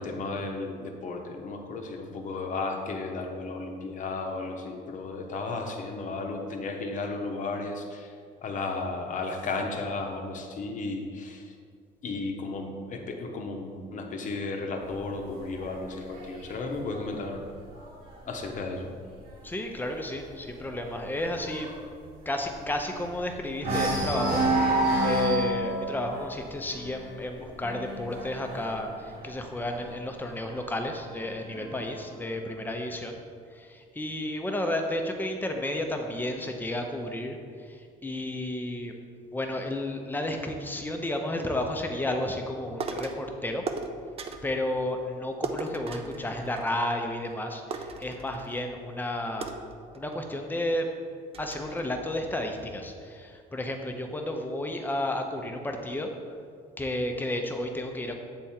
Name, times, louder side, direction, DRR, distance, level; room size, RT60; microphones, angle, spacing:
voice 1, 0.0-8.1 8.4-11.4 12.0-17.4 18.3-18.9, left 3 dB, 50° left, 3 dB, 0.8 m, -34 dB
sound 1, 14.8-18.4 18.8-19.2 19.4-19.5 19.9-23.2 23.6-30.1 31.0-32.0, right 1 dB, 60° right, 1.4 m, -30 dB
voice 2, 19.4-21.7 22.3-33.2 33.5-38.9 39.3-43.6 44.4-49.5 49.9-50.9 51.4-56.1 56.8-58.2, left 1 dB, 10° left, 3 dB, 0.7 m, -32 dB
sound 2, 42.8-43.3 43.7-44.5 45.4-47.0 47.3-47.4 47.7-48.7 49.4-50.4 50.9-51.0 51.3-51.8, right 4 dB, 35° right, 0.5 m, -37 dB
7.8 x 3.5 x 4.3 m, 2.1 s
cardioid pair, 110°, 17 cm